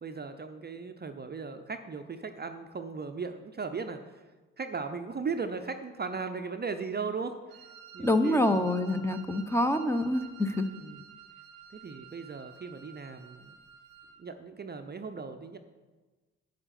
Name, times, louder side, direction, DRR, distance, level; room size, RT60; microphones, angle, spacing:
voice 1, 0.0-4.1 4.6-7.6 7.9-9.1 10.8-11.0 11.8-13.5 14.2-15.6, right 5 dB, 25° right, 7 dB, 0.7 m, -37 dB
Wind instrument woodwind instrument, 7.5-14.2, right 7 dB, 90° right, 0.8 m, -51 dB
voice 2, 8.0-10.6, left 1 dB, 5° left, 8 dB, 0.9 m, -26 dB
9.1 x 7.8 x 6.0 m, 1.3 s
hypercardioid pair, 50°, 39 cm